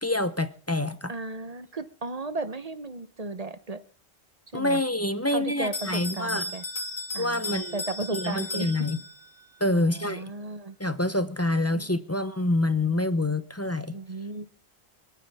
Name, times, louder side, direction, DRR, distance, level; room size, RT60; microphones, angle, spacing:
voice 1, 0.0-1.1 4.5-6.4 7.2-7.8 8.1-9.0 9.6-10.2 10.8-14.0, left 2 dB, 15° left, 12 dB, 0.7 m, -26 dB
voice 2, 1.1-3.8 4.5-4.8 5.3-6.6 7.1-8.7 9.7-10.8 11.7-11.9 13.9-14.4, right 3 dB, 40° right, 12 dB, 0.9 m, -35 dB
Bell, 5.7-9.5, left 2 dB, 90° left, 2.5 m, -35 dB
25.5 x 9.3 x 3.5 m, 0.43 s
omnidirectional pair, 1.1 m